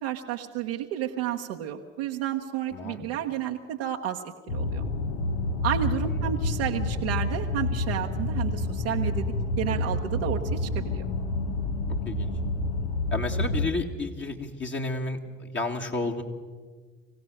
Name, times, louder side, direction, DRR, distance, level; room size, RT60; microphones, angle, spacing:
voice 1, 0.0-4.9 5.6-9.2 9.6-11.1, right 11 dB, 90° right, 0 dB, 0.9 m, -31 dB
voice 2, 2.7-3.1 6.0-6.3 12.1-12.3 13.1-16.2, left 2 dB, 40° left, 1 dB, 2.2 m, -32 dB
sound 1, 4.5-13.7, left 2 dB, 80° left, 1.2 m, -28 dB
25.0 x 16.0 x 6.5 m, 1.4 s
hypercardioid pair, 50°, 29 cm